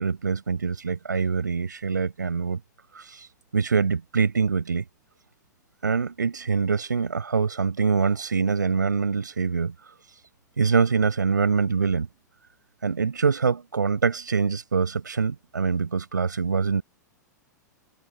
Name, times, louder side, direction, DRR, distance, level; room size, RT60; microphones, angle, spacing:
voice 1, 0.0-2.6 2.9-3.3 3.5-4.8 5.8-9.7 10.6-12.1 12.8-16.8, right 5 dB, 80° right, 6.6 m, -24 dB
figure-of-eight pair, 100°, 10 cm